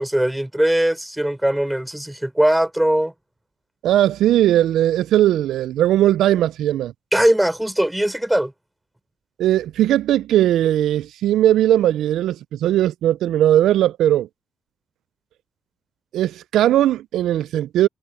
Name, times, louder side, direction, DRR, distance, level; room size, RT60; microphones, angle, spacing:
voice 1, 0.0-3.1 7.1-8.5, right 1 dB, 5° right, 3.7 m, -20 dB
voice 2, 3.8-6.9 9.4-14.3 16.1-17.9, right 12 dB, 85° right, 0.3 m, -18 dB
cardioid pair, 65°, 0 cm